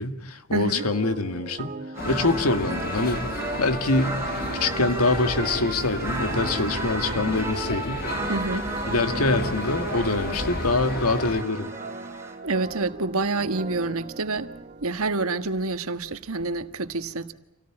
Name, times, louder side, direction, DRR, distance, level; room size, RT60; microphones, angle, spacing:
voice 1, 0.0-1.7 2.1-3.2 3.6-4.2 4.5-8.0 8.9-11.7, left 2 dB, 80° left, 2.1 m, -24 dB
voice 2, 0.5-0.8 8.3-8.7 12.4-14.5 14.8-17.3, right 3 dB, 70° right, 1.5 m, -27 dB
sound 1, 0.8-15.4, right 3 dB, 35° right, 1.1 m, -40 dB
sound 2, 1.9-12.4, right 1 dB, 10° right, 3.2 m, -33 dB
sound 3, 2.0-11.4, left 2 dB, 40° left, 1.3 m, -34 dB
28.0 x 18.0 x 8.8 m
head